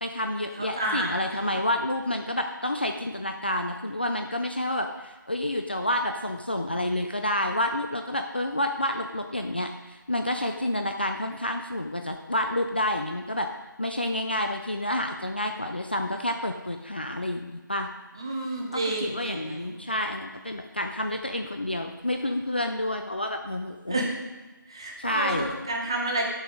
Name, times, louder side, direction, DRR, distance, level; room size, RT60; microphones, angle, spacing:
voice 1, 0.0-13.5 13.8-17.9 18.7-24.0 25.0-25.5, left 1 dB, 30° left, 5 dB, 0.4 m, -29 dB
voice 2, 0.6-1.6 18.2-19.8 23.9-24.1 24.7-26.2, right 1 dB, 15° right, 0 dB, 0.7 m, -30 dB
7.9 x 6.9 x 5.0 m, 1.2 s
figure-of-eight pair, 175°, 11 cm